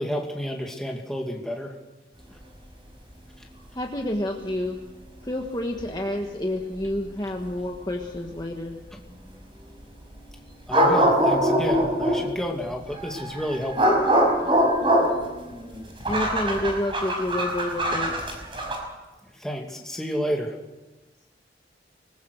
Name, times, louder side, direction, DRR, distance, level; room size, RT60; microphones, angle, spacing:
voice 1, 0.0-1.7 3.4-3.5 8.9-9.7 10.7-14.0 19.2-20.6, equal, 5° left, 1 dB, 2.4 m, -31 dB
voice 2, 3.7-4.8 5.2-8.8 16.1-18.1, left 1 dB, 20° left, 1 dB, 1.4 m, -29 dB
sound 1, 5.8-5.9 6.8-6.9 10.7-12.3 12.9-18.8, equal, 30° right, 5.5 m, -23 dB
24.5 x 20.5 x 6.5 m, 1.1 s
head